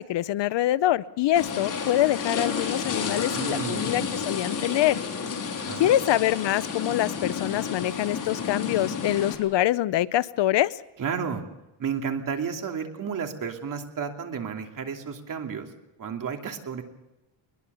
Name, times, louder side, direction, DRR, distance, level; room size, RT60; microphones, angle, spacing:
voice 1, 0.0-5.0 5.8-10.8, left 14 dB, 60° left, 17 dB, 0.7 m, -25 dB
sound 1, 1.4-9.4, left 5 dB, 40° left, 4.2 m, -31 dB
voice 2, 3.3-4.2 5.5-6.0 11.0-11.4 11.8-15.7 16.0-16.8, right 6 dB, 40° right, 4 dB, 2.8 m, -32 dB
22.0 x 22.0 x 6.9 m, 0.96 s
cardioid pair, 160°, 48 cm